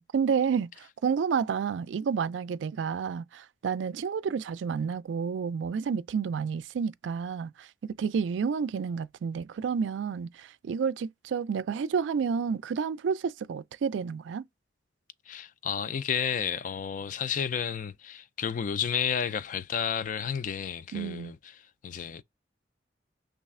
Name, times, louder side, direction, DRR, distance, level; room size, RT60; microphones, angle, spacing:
voice 1, 0.0-14.5 20.9-21.3, right 6 dB, 85° right, 0.3 m, -30 dB
voice 2, 15.3-22.2, left 7 dB, 45° left, 0.3 m, -32 dB
3.2 x 2.3 x 3.6 m
head